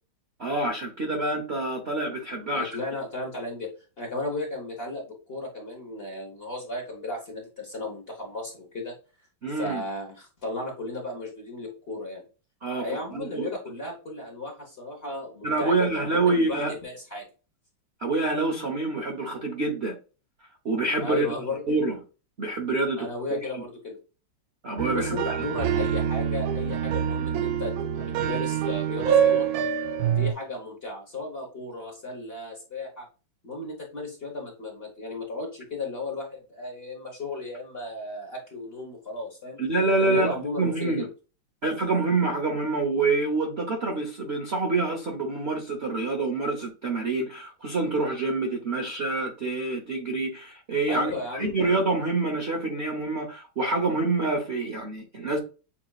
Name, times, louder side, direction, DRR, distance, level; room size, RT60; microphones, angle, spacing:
voice 1, 0.4-2.7 9.4-9.8 12.6-13.5 15.4-16.7 18.0-19.9 20.6-21.3 21.7-22.0 22.4-23.4 24.6-25.2 39.6-41.1 41.6-55.4, right 3 dB, 50° right, 0.8 m, -27 dB
voice 2, 2.4-3.7 4.0-8.9 9.5-12.2 12.8-17.3 21.0-21.6 23.0-24.0 24.9-29.5 30.1-33.1 33.4-39.6 40.0-41.1 50.9-51.5, left 2 dB, 35° left, 1.1 m, -35 dB
sound 1, 24.8-30.3, right 8 dB, 85° right, 0.8 m, -25 dB
7.2 x 2.9 x 2.4 m
omnidirectional pair, 2.2 m